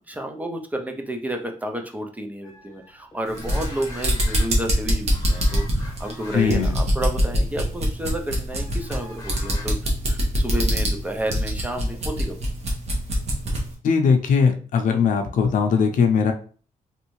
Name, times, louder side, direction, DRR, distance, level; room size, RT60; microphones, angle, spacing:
voice 1, 0.1-9.8 10.1-12.4, right 1 dB, 10° right, 3 dB, 0.4 m, -31 dB
sound 1, 2.4-4.8 5.1-6.6 7.0-7.2 8.5-9.7, left 3 dB, 25° left, 0.9 m, -43 dB
sound 2, 3.3-13.7, equal, 50° right, 1.0 m, -24 dB
voice 2, 6.3-6.8 13.8-16.3, left 6 dB, 70° left, 5 dB, 0.5 m, -20 dB
3.1 x 2.6 x 3.0 m, 0.40 s
wide cardioid pair, 150°, 14 cm